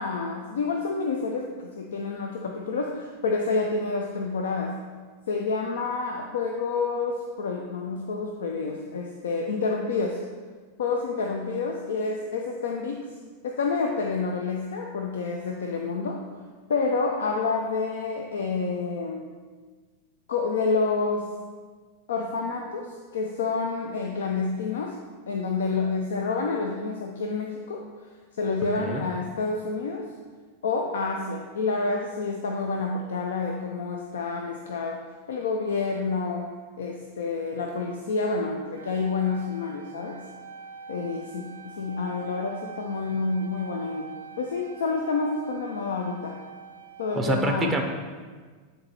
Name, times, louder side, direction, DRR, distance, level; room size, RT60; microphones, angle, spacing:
voice 1, 0.0-4.8 5.3-10.2 10.8-13.0 13.4-16.2 16.7-19.3 20.3-21.3 22.1-25.0 25.3-27.8 28.3-30.1 30.6-35.0 35.3-40.2 40.9-46.4 47.0-47.8, left 4 dB, 65° left, 2 dB, 0.4 m, -28 dB
Dover OH Siren Ambience Synth, 38.7-47.2, right 5 dB, 70° right, 0.5 m, -44 dB
voice 2, 47.2-47.8, right 2 dB, 15° right, 3 dB, 0.5 m, -26 dB
8.6 x 3.9 x 2.9 m, 1.5 s
figure-of-eight pair, 90°, 0 cm